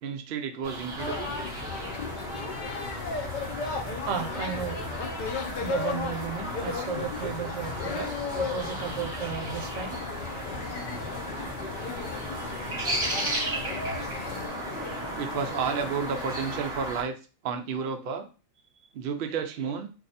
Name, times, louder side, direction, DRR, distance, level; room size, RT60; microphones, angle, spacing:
voice 1, 0.0-1.3 14.5-17.2 17.4-18.3 18.9-19.9, right 6 dB, 65° right, 5 dB, 0.6 m, -32 dB
sound 1, 0.6-17.0, right 2 dB, 25° right, 0.8 m, -36 dB
sound 2, 1.0-14.5, left 5 dB, 75° left, 0.4 m, -35 dB
voice 2, 4.1-4.9 5.4-8.1 8.3-10.0 12.3-12.7, right 7 dB, 80° right, 5 dB, 1.1 m, -34 dB
sound 3, 10.4-16.6, left 4 dB, 55° left, 0.9 m, -41 dB
2.6 x 2.3 x 4.0 m, 0.34 s
omnidirectional pair, 1.4 m